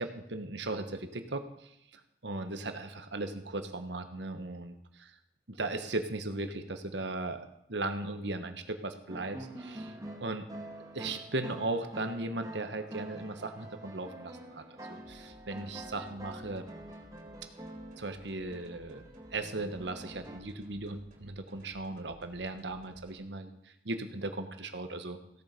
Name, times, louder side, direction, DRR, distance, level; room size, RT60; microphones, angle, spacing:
voice 1, 0.0-1.7 2.2-5.1 5.5-9.9 10.2-10.5 10.9-14.6 14.9-16.7 17.4-17.5 18.0-19.0 19.3-23.5 23.8-25.2, right 2 dB, 70° right, 8 dB, 1.3 m, -37 dB
sound 1, 9.1-20.4, right 1 dB, 20° right, 1.5 m, -46 dB
sound 2, 15.0-23.2, equal, 45° right, 3.7 m, -58 dB
16.5 x 7.5 x 5.3 m, 0.77 s
head